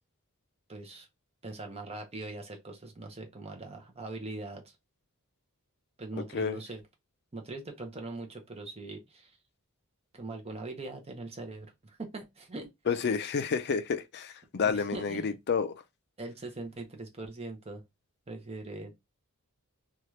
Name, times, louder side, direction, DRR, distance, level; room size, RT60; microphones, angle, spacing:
voice 1, 0.7-1.1 1.4-4.7 6.0-6.8 7.3-9.3 10.1-12.7 14.5-15.3 16.2-17.8 18.3-18.9, right 2 dB, 25° right, 0.7 m, -41 dB
voice 2, 12.9-15.7, left 5 dB, 50° left, 0.4 m, -30 dB
2.9 x 2.4 x 3.0 m
head